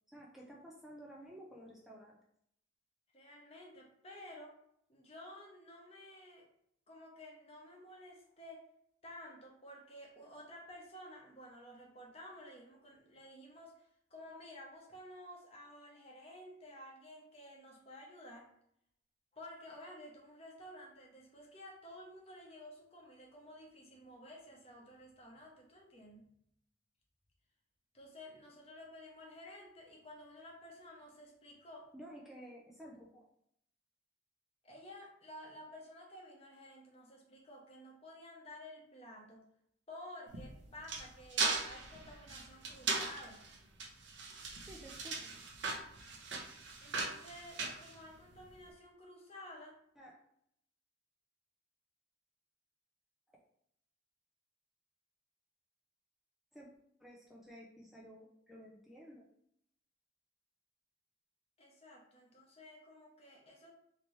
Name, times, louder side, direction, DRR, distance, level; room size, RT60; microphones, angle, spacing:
voice 1, 0.1-2.2 31.9-33.2 44.6-45.4 50.0-50.2 56.5-56.7 57.0-59.2, equal, ahead, -3 dB, 0.4 m, -53 dB
voice 2, 3.1-4.6 4.9-6.5 6.9-8.6 9.0-13.8 14.1-18.5 19.3-26.3 27.9-31.9 34.6-39.5 39.9-43.5 46.8-49.8 61.6-63.7, left 1 dB, 35° left, -1 dB, 0.9 m, -53 dB
Trashcan Metal Hall, 40.3-48.5, right 4 dB, 80° right, 0.7 m, -39 dB
3.2 x 2.9 x 3.1 m, 0.72 s
head